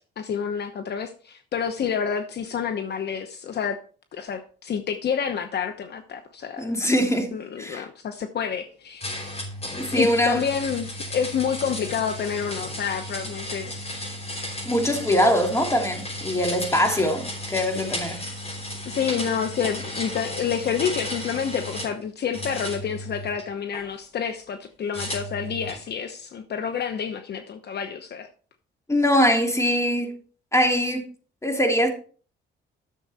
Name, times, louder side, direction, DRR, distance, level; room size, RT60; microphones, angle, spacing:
voice 1, 0.2-3.8 4.1-6.7 7.3-9.1 9.9-14.0 18.8-28.3, left 7 dB, 55° left, 1.0 m, -28 dB
voice 2, 6.6-7.3 7.6-7.8 9.7-10.4 14.6-18.2 28.9-30.2 30.5-31.0 31.4-31.9, equal, 15° left, 2.7 m, -22 dB
sound 1, 9.0-22.0 22.3-23.8 24.9-25.9, left 1 dB, 30° left, 5.1 m, -34 dB
11.5 x 7.0 x 4.2 m
cardioid pair, 90°, 20 cm